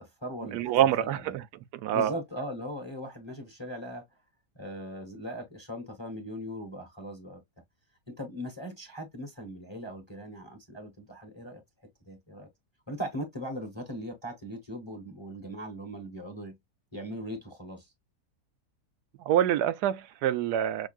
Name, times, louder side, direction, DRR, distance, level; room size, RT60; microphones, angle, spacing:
voice 1, 0.0-1.1 1.9-4.0 4.5-7.4 8.1-11.6 12.1-12.5 12.9-16.5 16.9-17.9, equal, 20° left, 0.9 m, -39 dB
voice 2, 0.5-1.4 1.7-2.1 19.2-20.9, right 11 dB, 75° right, 1.1 m, -26 dB
6.2 x 2.3 x 2.3 m
omnidirectional pair, 1.8 m